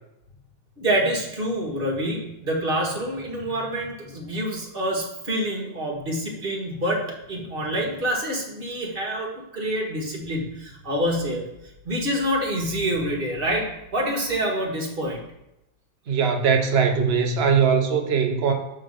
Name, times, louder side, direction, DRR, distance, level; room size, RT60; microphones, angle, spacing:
voice 1, 0.8-11.4 11.8-15.2, equal, 30° right, -1 dB, 1.4 m, -27 dB
voice 2, 16.1-18.5, right 6 dB, 65° right, 3 dB, 0.6 m, -20 dB
7.3 x 3.8 x 6.4 m, 0.90 s
omnidirectional pair, 2.2 m